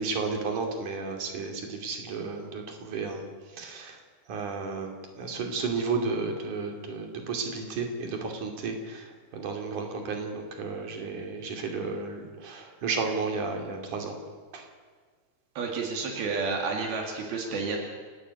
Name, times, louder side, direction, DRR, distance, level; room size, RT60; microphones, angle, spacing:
voice 1, 0.0-3.2 3.5-4.0 4.3-14.2 14.5-14.7, right 4 dB, 55° right, 3 dB, 4.0 m, -33 dB
voice 2, 15.6-17.8, right 4 dB, 80° right, 1 dB, 4.2 m, -30 dB
29.5 x 12.5 x 8.4 m, 1.6 s
omnidirectional pair, 4.4 m